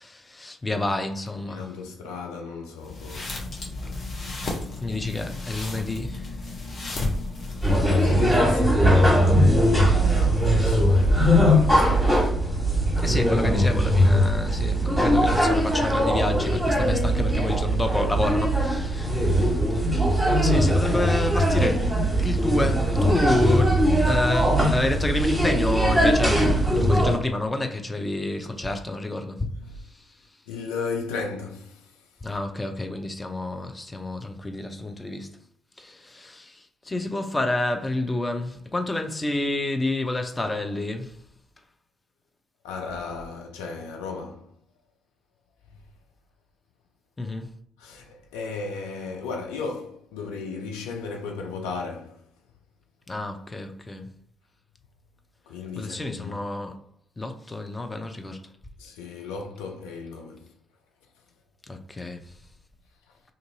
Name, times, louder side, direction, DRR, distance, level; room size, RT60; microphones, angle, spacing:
voice 1, 0.0-1.8 3.9-4.5 4.8-6.4 13.0-19.8 20.4-29.5 29.8-30.4 32.2-35.4 35.8-41.2 47.2-47.5 53.1-54.1 55.8-56.8 57.2-58.5 61.7-62.4, left 2 dB, 20° left, 0.5 m, -29 dB
voice 2, 1.5-3.4 7.6-12.4 12.9-13.0 29.6-29.7 30.5-31.9 42.6-44.5 47.8-52.2 55.5-56.4 58.8-60.5, left 4 dB, 70° left, 0.5 m, -35 dB
sound 1, 2.8-8.1, left 2 dB, 45° left, 0.8 m, -33 dB
sound 2, 7.6-27.2, equal, 5° right, 1.4 m, -20 dB
2.6 x 2.6 x 2.7 m
figure-of-eight pair, 45°, 0 cm